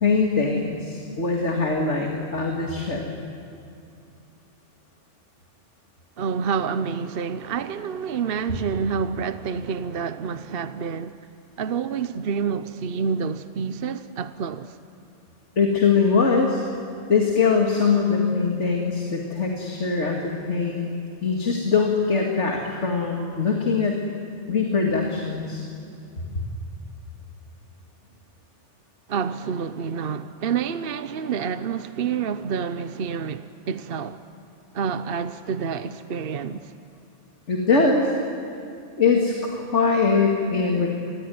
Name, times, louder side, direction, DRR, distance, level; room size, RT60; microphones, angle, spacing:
voice 1, 0.0-3.0 15.6-16.6 17.1-20.9 21.2-24.0 24.5-25.6 37.5-38.1 39.0-40.9, left 4 dB, 75° left, 2.7 m, -22 dB
voice 2, 6.2-11.2 11.6-14.8 29.1-34.2 34.7-36.7, right 6 dB, 55° right, 1.0 m, -28 dB
29.0 x 21.5 x 9.5 m
omnidirectional pair, 1.2 m